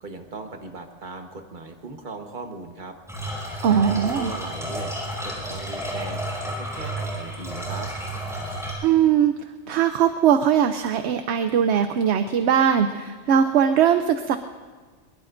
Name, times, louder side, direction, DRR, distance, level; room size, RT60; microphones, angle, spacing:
voice 1, 0.0-2.9 3.7-4.9 5.2-7.9, right 3 dB, 40° right, 4 dB, 1.4 m, -38 dB
sound 1, 3.1-8.7, right 1 dB, ahead, 5.8 m, -31 dB
voice 2, 3.6-4.3 8.8-9.3 9.7-14.4, right 8 dB, 65° right, 9 dB, 0.9 m, -20 dB
23.0 x 22.5 x 2.6 m, 1.4 s
omnidirectional pair, 1.3 m